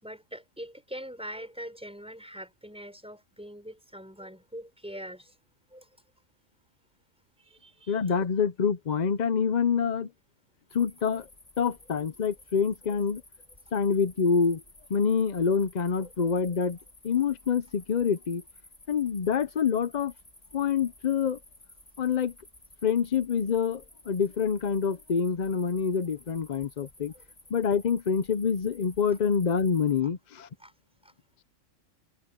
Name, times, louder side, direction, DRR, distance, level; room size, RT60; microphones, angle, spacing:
voice 1, 0.0-5.3 5.7-5.9 7.4-8.0 16.0-16.1 27.1-27.2 30.0-30.1 30.6-30.7 31.0-31.1, equal, 5° right, 5.5 m, -43 dB
voice 2, 7.9-10.1 10.7-11.3 11.6-13.2 13.7-14.6 14.9-16.8 17.0-18.4 18.9-20.1 20.5-21.4 22.0-22.3 22.8-27.1 27.5-30.5, left 6 dB, 45° left, 0.6 m, -26 dB
sound 1, 10.7-30.0, left 1 dB, 25° left, 3.0 m, -55 dB
omnidirectional pair, 1.3 m